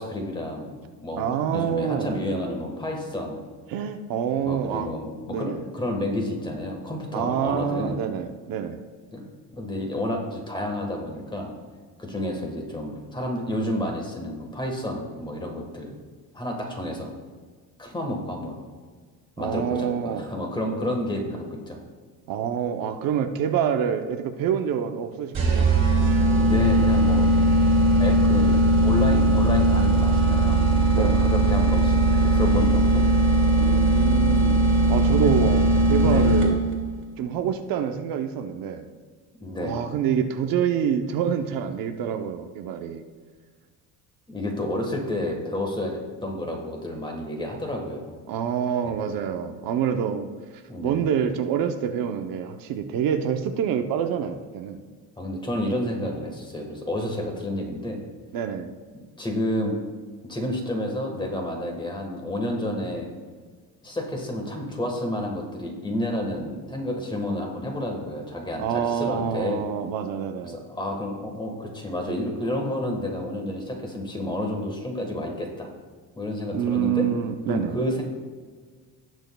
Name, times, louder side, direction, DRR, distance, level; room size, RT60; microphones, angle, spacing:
voice 1, 0.0-3.4 4.4-8.0 9.1-9.2 9.5-11.5 12.0-15.9 16.3-17.1 17.8-18.6 19.4-21.8 26.3-27.3 28.0-33.0 35.1-35.3 36.0-36.3 39.4-39.8 44.3-48.2 48.8-48.9 50.7-51.0 55.2-58.0 59.2-59.7 60.3-63.1 63.8-69.7 70.4-75.7 76.2-77.1 77.5-78.0, left 1 dB, 10° left, 2 dB, 1.4 m, -30 dB
voice 2, 1.2-2.2 3.7-4.9 5.3-5.6 7.1-8.8 19.4-20.2 22.3-25.7 30.9-31.2 33.5-34.6 34.9-36.6 37.2-38.9 39.6-43.0 48.3-50.3 50.8-54.8 58.3-58.7 68.6-70.6 76.5-77.8, right 8 dB, 65° right, 6 dB, 0.8 m, -27 dB
sound 1, 25.3-36.8, right 2 dB, 30° right, 2.2 m, -19 dB
18.5 x 6.3 x 2.3 m, 1.5 s
cardioid pair, 155°, 37 cm